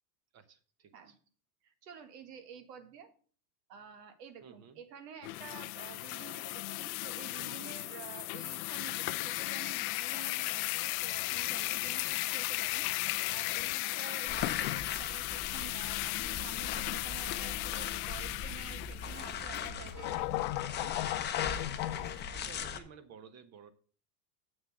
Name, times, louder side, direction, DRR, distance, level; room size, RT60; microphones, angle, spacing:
voice 1, 0.3-1.1 4.4-4.8 12.0-12.2 22.3-23.7, right 6 dB, 30° right, 12 dB, 1.0 m, -55 dB
voice 2, 1.6-3.1 3.7-12.9 13.3-20.9, right 7 dB, 75° right, 9 dB, 1.8 m, -50 dB
sound 1, 5.2-22.2, left 20 dB, 60° left, 0.5 m, -36 dB
sound 2, 14.3-22.8, left 7 dB, 20° left, 0.8 m, -40 dB
7.3 x 6.4 x 6.1 m, 0.43 s
supercardioid pair, 125°, 49 cm